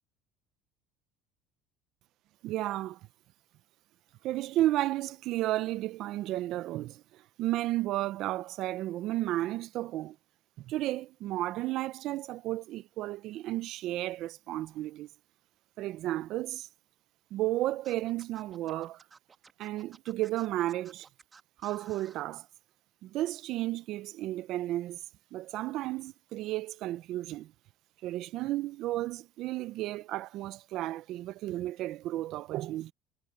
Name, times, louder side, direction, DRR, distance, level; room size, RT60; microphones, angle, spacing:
voice 1, 2.4-3.0 4.2-10.2 10.6-15.1 15.8-16.7 17.3-19.0 19.6-21.1 21.6-22.5 23.0-25.0 25.3-27.5 28.0-32.9, right 15 dB, 55° right, 0.4 m, -33 dB
Scratching (performance technique), 17.8-22.2, right 5 dB, 20° right, 1.6 m, -55 dB
cardioid pair, 150°, 0 cm